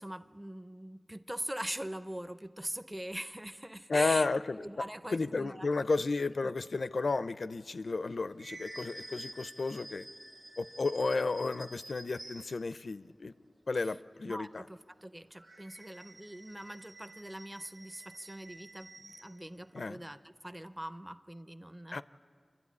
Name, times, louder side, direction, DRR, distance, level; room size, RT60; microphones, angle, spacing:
voice 1, 0.0-4.3 4.6-5.7 6.2-6.5 13.8-14.0 14.2-22.0, right 1 dB, 15° right, 12 dB, 0.6 m, -42 dB
voice 2, 3.9-4.6 5.1-10.1 10.6-13.3 13.7-14.6 19.7-20.0 21.9-22.0, left 3 dB, 85° left, 14 dB, 0.5 m, -32 dB
sound 1, 7.9-12.7 15.4-19.4, right 1 dB, 55° right, 2.1 m, -50 dB
27.5 x 12.0 x 9.6 m, 2.2 s
wide cardioid pair, 70°, 0 cm